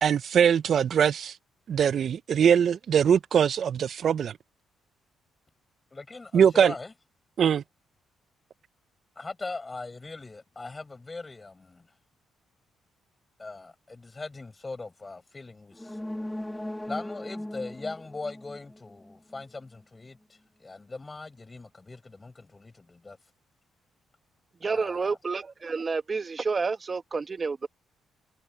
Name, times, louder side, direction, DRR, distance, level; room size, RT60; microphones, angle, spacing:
voice 1, 0.0-1.4 1.7-4.4 6.3-6.7 7.4-7.6, right 8 dB, 55° right, 0.4 m, -22 dB
voice 2, 5.9-6.9 9.2-11.9 13.4-16.0 16.9-20.2 20.6-23.2 24.6-25.2, left 3 dB, 25° left, 6.0 m, -40 dB
sound 1, 15.7-19.4 19.8-19.9, left 1 dB, 5° left, 1.6 m, -38 dB
voice 3, 24.6-27.7, right 4 dB, 35° right, 1.3 m, -29 dB
cardioid pair, 90°, 0 cm